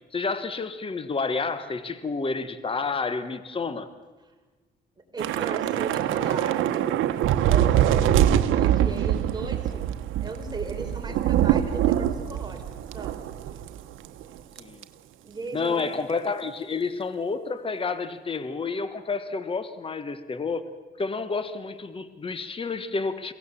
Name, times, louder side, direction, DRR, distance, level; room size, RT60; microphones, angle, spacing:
voice 1, 0.1-3.9 11.1-11.2 14.6-14.9 15.5-20.7 21.0-23.3, left 4 dB, 25° left, 12 dB, 1.2 m, -30 dB
voice 2, 5.1-7.0 7.5-13.2 15.2-15.9, right 3 dB, 20° right, 2 dB, 4.2 m, -37 dB
Thunder / Rain, 5.2-13.8 14.0-14.2 14.6-14.8, right 11 dB, 85° right, 1.0 m, -24 dB
23.0 x 17.0 x 7.3 m, 1.3 s
cardioid pair, 90°, 20 cm